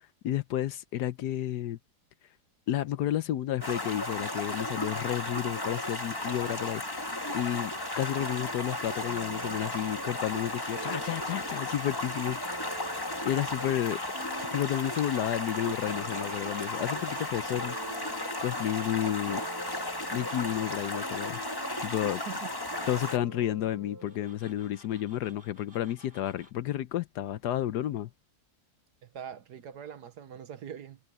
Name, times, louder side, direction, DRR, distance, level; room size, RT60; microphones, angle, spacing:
voice 1, 0.2-1.8 2.7-6.8 7.3-12.4 12.8-12.9 13.2-14.0 14.5-17.8 18.4-19.4 19.7-19.8 20.1-21.4 21.8-22.2 22.9-28.1, left 12 dB, 80° left, 1.2 m, -31 dB
Stream, 3.6-23.2, left 1 dB, 15° left, 1.4 m, -35 dB
Tools, 8.7-17.4 19.5-21.8 24.0-26.5, right 1 dB, 35° right, 7.4 m, -58 dB
sound 1, 9.0-15.2 15.9-22.1 22.7-24.2, right 2 dB, 15° right, 1.3 m, -46 dB
voice 2, 22.1-22.5 29.0-31.0, right 8 dB, 75° right, 1.6 m, -43 dB
omnidirectional pair, 1.8 m